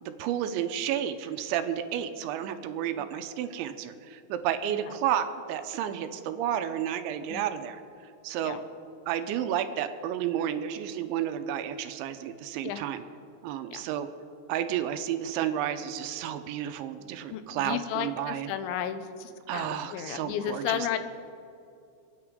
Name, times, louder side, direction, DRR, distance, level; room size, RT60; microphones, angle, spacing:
voice 1, 0.0-7.8 8.2-8.6 9.1-13.0 13.4-14.1 14.5-18.5 19.5-20.9, right 10 dB, 85° right, 9 dB, 3.0 m, -31 dB
voice 2, 17.3-21.0, left 9 dB, 85° left, 10 dB, 3.1 m, -33 dB
28.0 x 9.6 x 3.7 m, 2.5 s
omnidirectional pair, 5.4 m